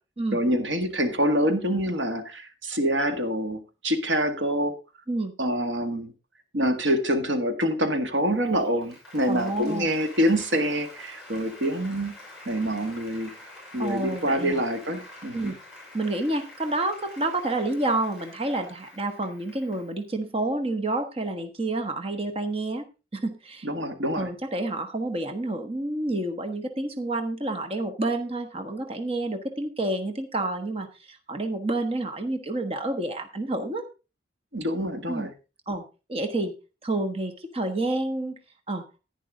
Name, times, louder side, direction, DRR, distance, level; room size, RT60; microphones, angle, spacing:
voice 1, 0.3-4.7 5.4-6.1 6.5-12.1 12.5-13.3 13.7-15.5 23.6-24.3 34.5-35.3, equal, 85° right, 7 dB, 1.9 m, -26 dB
Applause, 8.4-20.0, left 2 dB, ahead, 6.2 m, -47 dB
voice 2, 9.3-9.9 13.8-14.6 15.3-15.6 15.9-22.9 23.1-23.7 24.1-33.9 35.1-35.3 35.7-35.8 36.1-36.5 36.8-38.4 38.7-38.8, right 2 dB, 30° right, 6 dB, 1.2 m, -29 dB
10.5 x 10.0 x 3.8 m, 0.30 s
head